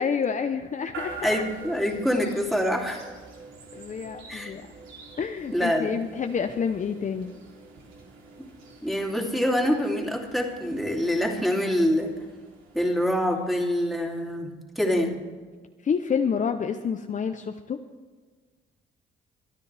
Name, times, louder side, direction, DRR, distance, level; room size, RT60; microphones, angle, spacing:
voice 1, 0.0-1.4 3.7-4.7 5.2-7.3 15.8-17.8, left 6 dB, 40° left, 6 dB, 0.7 m, -28 dB
sound 1, 0.9-13.9, right 3 dB, 90° right, 3.2 m, -45 dB
voice 2, 1.2-3.1 4.3-4.5 5.5-6.1 8.8-12.2 12.7-15.2, equal, ahead, -1 dB, 2.8 m, -25 dB
26.0 x 10.0 x 3.4 m, 1.5 s
cardioid pair, 90°, 20 cm